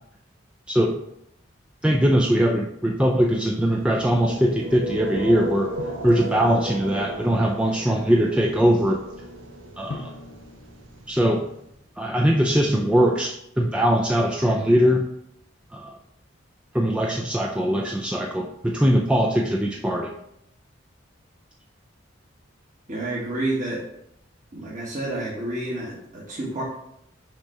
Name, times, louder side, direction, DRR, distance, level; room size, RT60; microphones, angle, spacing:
voice 1, 1.8-5.7 6.0-9.0 9.8-10.1 11.1-11.5 12.0-15.1 15.7-15.9 16.7-20.1, equal, 5° right, 0 dB, 0.4 m, -21 dB
sound 1, 3.6-11.7, right 1 dB, 90° right, 1.0 m, -35 dB
Drum, 5.8-7.3 9.9-12.1, left 3 dB, 55° left, 0.7 m, -42 dB
voice 2, 22.9-23.8 24.5-26.6, right 2 dB, 40° right, -7 dB, 1.4 m, -29 dB
5.8 x 3.4 x 5.5 m, 0.78 s
head